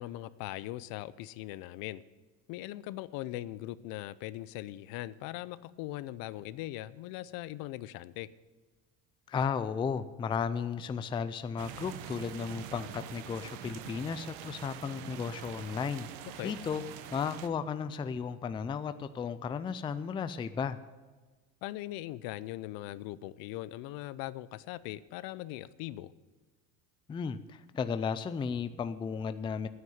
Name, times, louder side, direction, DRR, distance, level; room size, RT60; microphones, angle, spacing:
voice 1, 0.0-2.0 2.5-8.3 16.4-16.5 21.6-26.1, left 16 dB, 65° left, 17 dB, 0.6 m, -40 dB
voice 2, 9.3-16.1 16.4-16.8 17.1-20.8 27.1-29.7, left 6 dB, 15° left, 12 dB, 0.4 m, -34 dB
sound 1, 11.6-17.5, right 10 dB, 85° right, 1.1 m, -45 dB
9.4 x 9.2 x 9.3 m, 1.3 s
cardioid pair, 130°, 38 cm